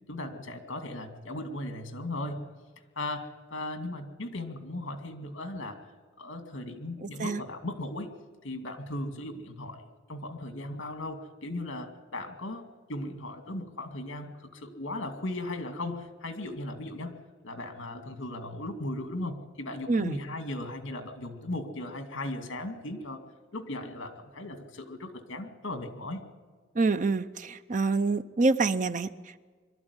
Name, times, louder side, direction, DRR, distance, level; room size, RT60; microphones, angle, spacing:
voice 1, 0.1-2.5 3.0-5.8 6.2-8.1 8.4-12.6 12.9-17.2 17.4-23.2 23.5-26.3, left 1 dB, 70° left, 7 dB, 2.4 m, -37 dB
voice 2, 7.0-7.4 19.9-20.2 26.7-29.4, right 3 dB, 40° right, 12 dB, 0.6 m, -27 dB
23.0 x 13.0 x 9.7 m, 1.5 s
head